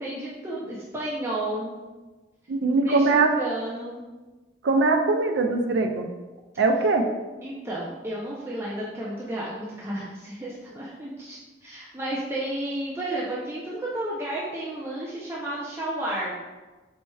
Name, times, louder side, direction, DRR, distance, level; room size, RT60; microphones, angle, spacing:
voice 1, 0.0-1.8 2.7-4.0 7.4-16.3, right 1 dB, 15° right, -6 dB, 0.5 m, -32 dB
voice 2, 2.5-3.3 4.6-6.1 6.6-7.0, right 3 dB, 85° right, 4 dB, 0.4 m, -21 dB
4.3 x 4.2 x 2.3 m, 1.2 s
head